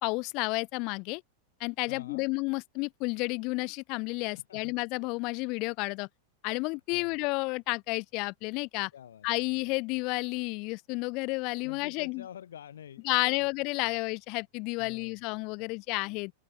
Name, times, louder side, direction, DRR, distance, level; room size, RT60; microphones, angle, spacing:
voice 1, 0.0-1.2 1.6-6.1 6.4-8.9 9.2-12.2 13.1-16.3, left 27 dB, 40° left, 2.2 m, -31 dB
voice 2, 1.9-2.3 4.3-4.8 6.9-7.2 8.9-9.3 9.5-9.7 11.6-13.5 13.8-14.0 14.8-15.2, left 9 dB, 65° left, 7.4 m, -48 dB
open air
figure-of-eight pair, 90°, 0 cm